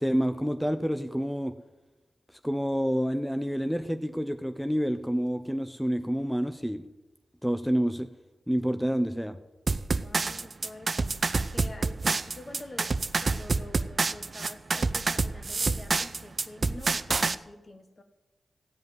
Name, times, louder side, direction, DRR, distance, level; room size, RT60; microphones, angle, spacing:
voice 1, 0.0-1.5 2.4-6.8 7.4-8.1 8.5-9.4, equal, ahead, 9 dB, 0.7 m, -28 dB
sound 1, 9.7-17.4, right 3 dB, 55° right, 0.6 m, -27 dB
voice 2, 10.0-18.0, left 2 dB, 45° left, 7 dB, 1.5 m, -46 dB
15.5 x 5.3 x 9.4 m, 1.1 s
cardioid pair, 50°, 0 cm